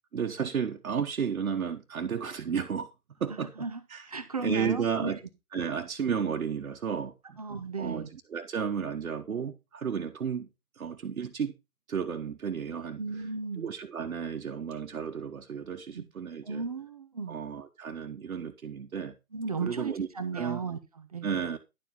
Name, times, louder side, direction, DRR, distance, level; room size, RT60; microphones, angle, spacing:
voice 1, 0.1-2.9 3.2-3.5 3.9-4.1 4.4-5.2 5.5-7.4 7.8-10.5 10.8-11.5 11.9-13.0 13.6-16.6 17.3-19.1 19.6-20.1 20.3-20.6 21.2-21.6, right 7 dB, 65° right, 1.3 m, -33 dB
voice 2, 3.3-5.1 7.4-8.1 13.0-13.7 15.9-16.1 16.4-17.4 19.3-21.3, right 4 dB, 25° right, 0.7 m, -35 dB
11.0 x 5.0 x 5.6 m
hypercardioid pair, 155°, 45 cm